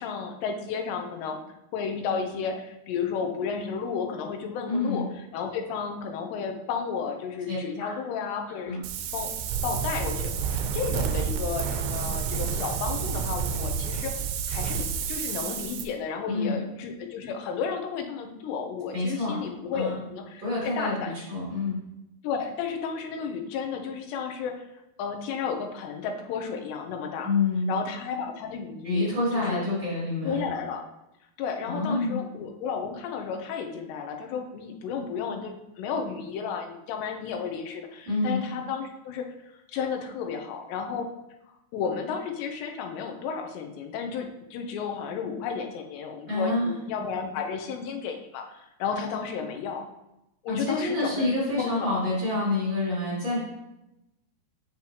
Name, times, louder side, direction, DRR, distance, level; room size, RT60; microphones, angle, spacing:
voice 1, 0.0-1.4 1.7-5.0 5.3-8.8 9.1-9.4 9.6-14.1 14.5-21.1 22.2-24.7 25.0-27.3 27.7-29.6 30.2-30.8 31.4-41.1 41.7-49.8 50.4-52.0, left 6 dB, 90° left, 4 dB, 3.0 m, -33 dB
voice 2, 4.7-5.1 7.5-7.9 8.6-8.8 16.3-16.6 18.9-19.4 19.7-19.9 20.4-21.8 27.2-27.7 28.8-30.4 31.7-32.2 38.1-38.4 46.3-46.7 50.5-53.4, left 2 dB, 30° right, -8 dB, 2.9 m, -27 dB
Wind, 8.8-15.8, right 7 dB, 85° right, 2.6 m, -29 dB
7.7 x 7.4 x 2.9 m, 0.92 s
omnidirectional pair, 4.8 m